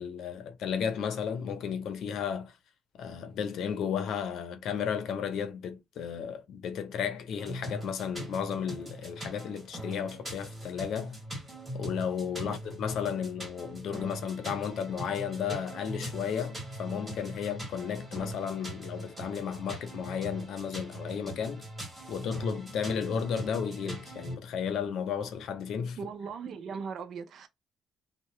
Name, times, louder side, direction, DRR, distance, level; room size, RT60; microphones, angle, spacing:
voice 1, 0.0-2.6 2.9-11.2 11.7-21.6 22.1-26.0, left 7 dB, 75° left, 0.6 m, -33 dB
sound 1, 7.4-24.4, right 1 dB, 20° right, 1.8 m, -41 dB
voice 2, 26.0-27.5, right 6 dB, 65° right, 0.4 m, -39 dB
2.7 x 2.2 x 3.0 m
cardioid pair, 90°, 0 cm